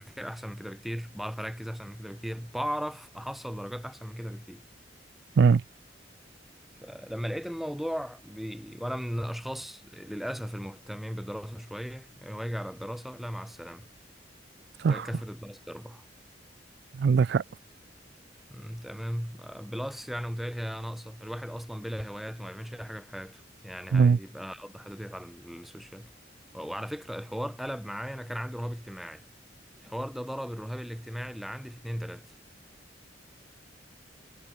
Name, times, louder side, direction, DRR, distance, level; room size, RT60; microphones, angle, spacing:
voice 1, 0.0-4.6 6.8-13.9 14.9-16.0 18.5-26.1 26.5-29.2 29.8-32.3, equal, ahead, 3.1 m, -37 dB
voice 2, 17.0-17.4 23.9-24.2, right 5 dB, 65° right, 0.4 m, -20 dB
head